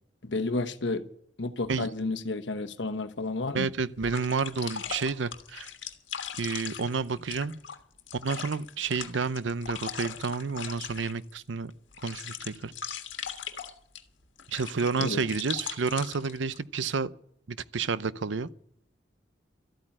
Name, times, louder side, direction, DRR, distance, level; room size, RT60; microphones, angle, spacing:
voice 1, 0.2-1.0 1.4-3.7 15.0-15.2, left 3 dB, 70° left, 1.1 m, -31 dB
sound 1, 3.3-3.4 4.0-11.3 11.7-14.0 14.4-16.6, left 8 dB, 90° left, 1.5 m, -39 dB
voice 2, 3.5-5.7 6.4-7.6 8.1-11.7 12.0-12.7 14.5-17.1 17.5-18.5, right 5 dB, 80° right, 0.6 m, -30 dB
13.5 x 8.9 x 9.9 m
head